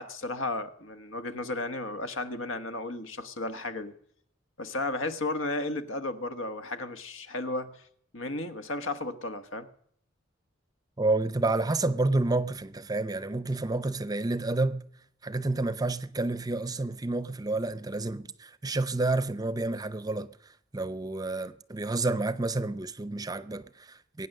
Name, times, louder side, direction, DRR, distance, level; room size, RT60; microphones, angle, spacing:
voice 1, 0.0-3.9 4.6-7.8 8.1-9.7, left 2 dB, 80° left, 1.3 m, -34 dB
voice 2, 11.0-14.8 15.2-20.3 20.7-24.3, right 2 dB, 20° right, 0.6 m, -29 dB
22.0 x 9.4 x 6.6 m
head